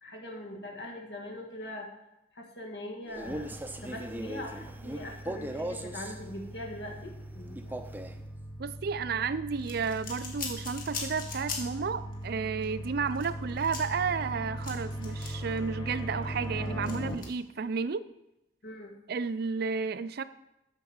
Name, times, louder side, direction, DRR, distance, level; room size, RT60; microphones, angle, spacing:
voice 1, 0.0-1.9 2.3-3.5 3.8-7.8 18.6-18.9, left 1 dB, 70° left, 0 dB, 1.9 m, -42 dB
Male speech man speaking, 3.1-6.2 7.6-8.2, right 1 dB, 10° right, 0.6 m, -38 dB
sound 1, 3.3-17.1, right 1 dB, 30° left, 0.9 m, -40 dB
voice 2, 8.6-18.0 19.1-20.2, right 5 dB, 60° right, 14 dB, 0.4 m, -32 dB
sound 2, 9.6-11.9 12.1-12.3 12.6-15.6 16.0-17.3, left 4 dB, 50° left, 1.9 m, -40 dB
8.0 x 6.0 x 7.2 m, 0.89 s
head